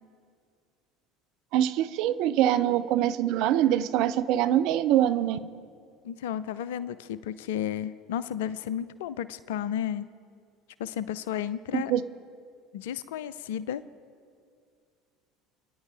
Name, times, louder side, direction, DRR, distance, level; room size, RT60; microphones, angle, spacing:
voice 1, 1.5-5.4 11.7-12.0, right 12 dB, 60° right, 13 dB, 0.6 m, -24 dB
voice 2, 6.0-10.1 10.8-11.9 12.7-13.8, left 10 dB, 70° left, 17 dB, 0.5 m, -33 dB
28.5 x 10.0 x 3.5 m, 2.2 s
hypercardioid pair, 70°, 0 cm